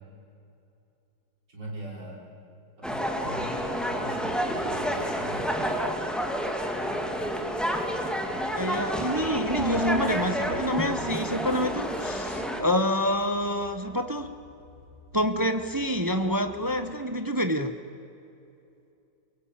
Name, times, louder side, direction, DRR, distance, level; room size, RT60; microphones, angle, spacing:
voice 1, 1.5-2.3 2.8-5.4, right 1 dB, 60° right, -2 dB, 6.2 m, -41 dB
sound 1, 2.8-12.6, equal, ahead, 2.1 m, -29 dB
sound 2, 8.3-16.9, equal, 35° right, 4.3 m, -47 dB
voice 2, 8.6-14.3 15.1-17.7, equal, 20° right, 8 dB, 0.6 m, -27 dB
24.0 x 23.0 x 8.9 m, 2.7 s
omnidirectional pair, 2.1 m